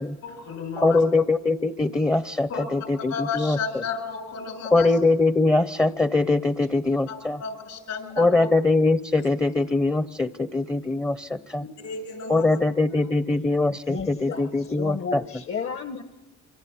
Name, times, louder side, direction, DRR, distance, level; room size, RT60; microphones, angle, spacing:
voice 1, 0.2-1.0 2.5-2.6 3.1-4.9 7.1-8.5 11.8-12.6, left 5 dB, 70° left, 8 dB, 7.1 m, -33 dB
voice 2, 0.8-3.8 4.7-7.4 8.2-11.6 12.3-15.2, left 2 dB, 10° left, 12 dB, 0.8 m, -22 dB
voice 3, 13.9-16.0, left 5 dB, 45° left, 8 dB, 1.3 m, -33 dB
26.5 x 25.5 x 7.3 m, 1.2 s
cardioid pair, 90°, 30 cm